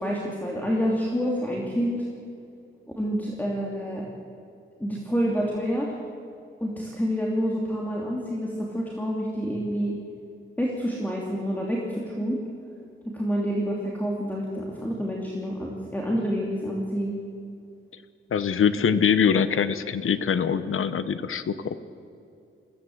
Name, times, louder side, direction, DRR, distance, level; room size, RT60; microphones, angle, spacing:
voice 1, 0.0-2.0 3.0-4.0 4.8-5.9 6.6-9.9 10.6-12.4 13.1-17.2, equal, 10° left, -3 dB, 2.8 m, -28 dB
voice 2, 18.3-21.7, left 7 dB, 80° left, 13 dB, 1.0 m, -23 dB
22.0 x 16.0 x 8.0 m, 2.5 s
wide cardioid pair, 115°, 21 cm